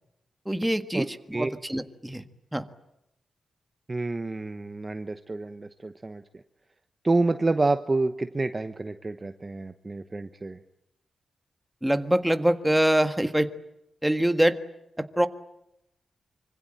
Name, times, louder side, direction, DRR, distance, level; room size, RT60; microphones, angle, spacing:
voice 1, 0.4-2.2 2.5-2.6 11.8-13.5 14.0-14.6 15.0-15.3, right 1 dB, 5° right, 9 dB, 1.6 m, -24 dB
voice 2, 3.9-6.4 7.0-10.6, right 2 dB, 20° right, 9 dB, 1.1 m, -28 dB
26.0 x 25.5 x 8.9 m, 0.84 s
wide cardioid pair, 135°, 0 cm